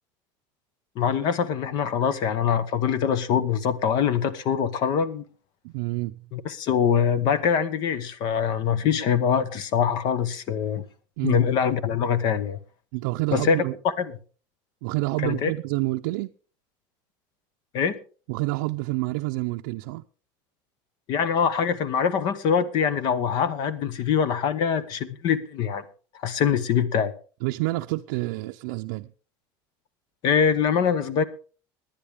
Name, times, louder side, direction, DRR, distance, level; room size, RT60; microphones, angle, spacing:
voice 1, 1.0-5.2 6.3-10.8 11.2-12.6 13.3-13.6 14.0-14.2 15.2-15.5 17.7-18.0 21.1-25.8 26.1-27.1 30.2-31.2, left 7 dB, 45° left, 1.0 m, -24 dB
voice 2, 5.6-6.2 11.2-11.4 12.9-13.7 14.8-16.3 18.3-20.0 27.4-29.1, right 21 dB, 85° right, 0.5 m, -28 dB
19.0 x 10.5 x 3.6 m
cardioid pair, 170°, 10 cm